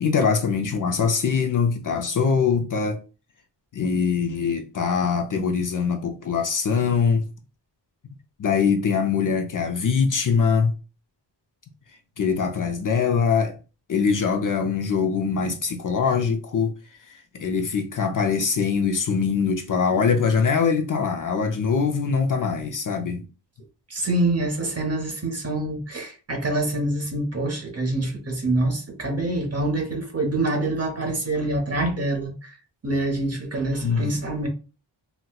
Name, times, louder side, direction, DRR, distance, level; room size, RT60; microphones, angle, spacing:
voice 1, 0.0-3.0 3.7-7.3 8.4-10.7 12.2-13.5 13.9-16.7 17.0-23.2 33.8-34.1, left 5 dB, 45° left, 0.5 m, -23 dB
voice 2, 23.9-32.6 32.8-34.5, right 2 dB, 35° right, 0.8 m, -26 dB
4.1 x 2.1 x 2.3 m
wide cardioid pair, 135°, 45 cm